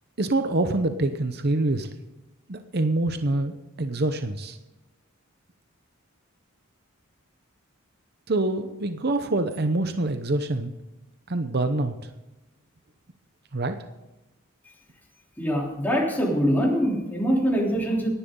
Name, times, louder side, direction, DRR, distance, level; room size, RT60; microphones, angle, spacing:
voice 1, 0.2-1.9 2.5-4.6 8.3-10.7 11.3-12.1 13.5-13.8, right 2 dB, 45° right, 8 dB, 0.8 m, -25 dB
voice 2, 15.4-18.1, equal, 10° left, -3 dB, 3.3 m, -23 dB
17.0 x 11.5 x 3.8 m, 0.99 s
head